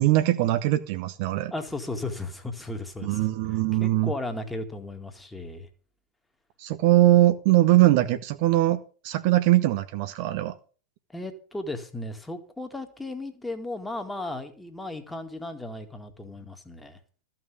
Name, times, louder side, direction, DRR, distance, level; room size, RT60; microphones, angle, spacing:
voice 1, 0.0-1.5 3.0-4.1 6.6-10.6, right 15 dB, 45° right, 0.8 m, -21 dB
voice 2, 1.5-3.2 3.8-5.7 11.1-17.0, left 2 dB, 5° left, 2.1 m, -35 dB
14.0 x 5.9 x 8.5 m
figure-of-eight pair, 90°, 0 cm